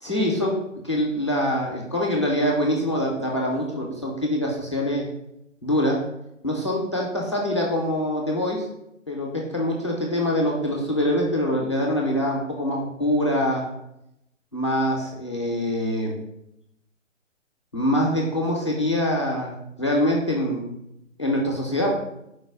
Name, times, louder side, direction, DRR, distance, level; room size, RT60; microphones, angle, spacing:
voice 1, 0.0-0.6 0.8-5.0 5.6-6.0 6.4-8.6 9.1-13.6 14.5-16.1 17.7-19.5 19.8-20.7 21.2-21.9, equal, 25° left, -3 dB, 0.4 m, -24 dB
4.5 x 2.2 x 4.7 m, 0.83 s
figure-of-eight pair, 140°, 38 cm